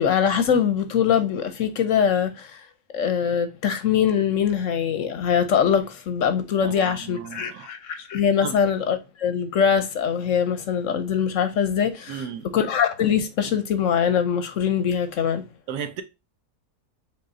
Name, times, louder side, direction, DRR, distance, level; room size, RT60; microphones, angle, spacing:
voice 1, 0.0-2.6 2.9-12.2 12.5-15.4, left 7 dB, 65° left, 0.9 m, -22 dB
voice 2, 6.6-7.7 8.4-8.6 12.1-12.5 15.7-16.0, right 8 dB, 85° right, 1.3 m, -34 dB
5.5 x 3.5 x 2.6 m
omnidirectional pair, 1.6 m